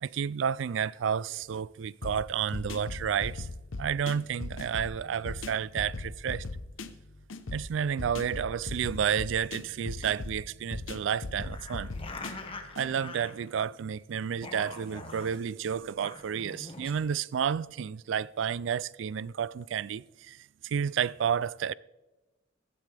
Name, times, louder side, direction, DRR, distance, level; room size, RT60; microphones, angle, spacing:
voice 1, 0.0-3.5 3.8-6.4 7.5-11.9 12.3-12.4 12.8-21.7, right 7 dB, 65° right, 0.3 m, -31 dB
sound 1, 2.0-12.9, left 3 dB, 80° left, 0.8 m, -39 dB
sound 2, 11.4-13.8 14.2-15.4 15.9-16.9, left 3 dB, 30° left, 1.2 m, -44 dB
14.5 x 12.5 x 3.4 m
head